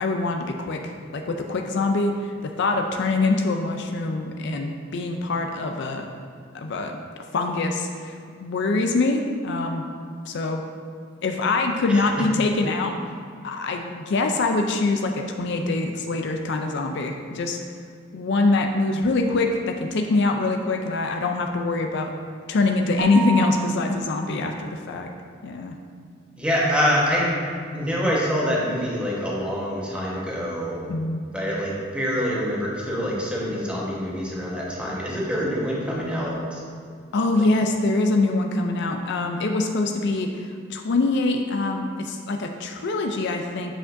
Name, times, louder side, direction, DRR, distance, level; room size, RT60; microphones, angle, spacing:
voice 1, 0.0-6.1 6.5-7.0 7.3-8.1 8.4-9.8 10.3-10.6 11.2-13.0 13.4-17.6 18.1-22.1 22.5-25.1 25.4-25.8 30.9-31.2 37.1-43.7, left 3 dB, 60° left, 3 dB, 0.4 m, -24 dB
sound 1, 23.0-24.0, right 5 dB, 70° right, 1.1 m, -30 dB
voice 2, 26.4-27.3 27.7-30.8 31.3-36.6, equal, 5° right, -5 dB, 1.2 m, -25 dB
8.1 x 6.0 x 2.6 m, 2.2 s
head